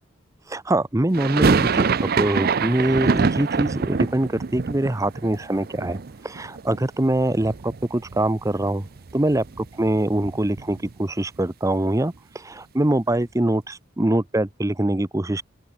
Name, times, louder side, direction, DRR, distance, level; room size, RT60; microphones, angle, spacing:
voice 1, 0.5-8.9 9.1-15.4, right 1 dB, 15° right, 0.7 m, -23 dB
Dramatic overhead thunderclap, 1.1-7.1 7.3-8.2 8.5-8.6 8.8-11.0, right 5 dB, 50° right, 0.6 m, -25 dB
open air
head